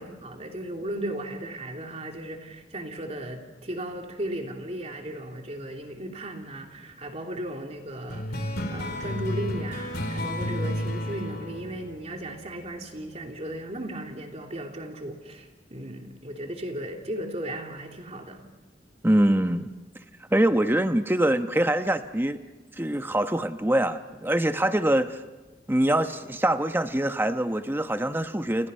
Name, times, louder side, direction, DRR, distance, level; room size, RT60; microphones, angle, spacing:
voice 1, 0.0-18.4, right 1 dB, 40° right, 2 dB, 3.2 m, -36 dB
sound 1, 8.1-13.0, equal, 60° left, 3.8 m, -32 dB
voice 2, 19.0-19.7 20.3-22.4 22.8-25.2 25.7-28.7, right 1 dB, 15° right, 8 dB, 1.0 m, -24 dB
29.5 x 28.5 x 5.6 m, 1.2 s
head